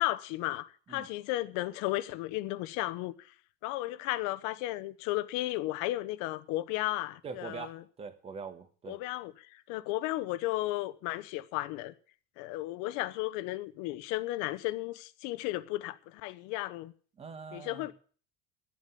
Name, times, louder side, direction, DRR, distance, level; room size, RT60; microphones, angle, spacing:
voice 1, 0.0-3.1 3.6-7.8 8.9-11.9 12.4-16.9 17.5-17.9, left 17 dB, 65° left, 0.9 m, -34 dB
voice 2, 7.2-9.0 17.2-17.9, right 5 dB, 20° right, 1.3 m, -43 dB
12.0 x 8.6 x 8.3 m
cardioid pair, 175°, 31 cm